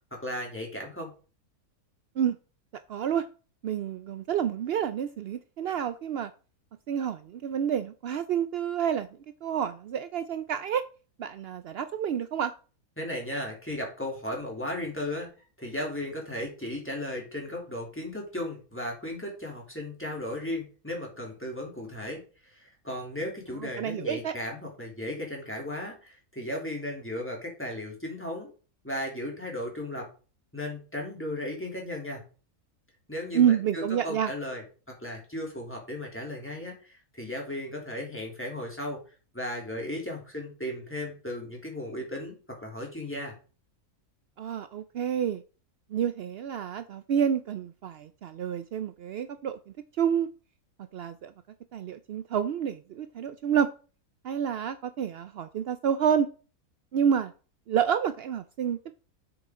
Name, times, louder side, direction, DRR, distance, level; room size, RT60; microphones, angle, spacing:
voice 1, 0.1-1.1 13.0-15.3 15.6-28.5 28.8-30.1 30.5-32.2 33.1-39.0 39.3-43.3, left 1 dB, 10° left, -1 dB, 2.9 m, -36 dB
voice 2, 2.9-3.3 3.6-6.3 6.9-9.1 9.4-10.8 11.2-12.5 23.6-24.3 33.3-34.3 44.4-45.4 45.9-49.6 50.0-50.3 50.9-51.3 51.7-53.7 54.2-56.3 56.9-57.3 57.7-59.0, right 8 dB, 75° right, 11 dB, 0.5 m, -28 dB
7.9 x 7.0 x 3.7 m, 0.36 s
omnidirectional pair, 1.6 m